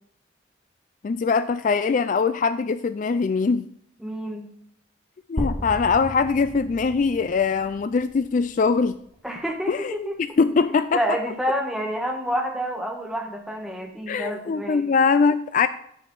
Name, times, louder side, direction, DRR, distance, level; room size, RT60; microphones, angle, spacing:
voice 1, 1.0-3.7 5.3-9.0 9.7-11.0 14.1-15.7, left 5 dB, 40° left, 13 dB, 0.3 m, -22 dB
voice 2, 4.0-4.5 9.2-10.2 10.9-14.9, equal, ahead, 1 dB, 1.4 m, -28 dB
sound 1, 5.4-9.3, left 1 dB, 25° left, 1.6 m, -35 dB
10.5 x 7.7 x 4.7 m, 0.69 s
head